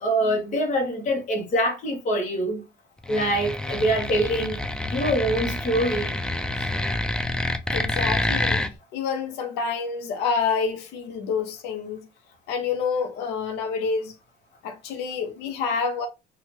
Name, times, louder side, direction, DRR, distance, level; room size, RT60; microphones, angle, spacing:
voice 1, 0.0-2.6 3.1-4.6 4.9-6.2, right 1 dB, 45° left, 1.0 m, -24 dB
sound 1, 3.0-8.7, left 1 dB, 5° left, 0.3 m, -27 dB
voice 2, 7.7-8.6 8.9-12.1 12.5-14.1 14.6-16.1, left 5 dB, 85° left, 0.6 m, -28 dB
2.7 x 2.3 x 3.0 m
cardioid pair, 110°, 17 cm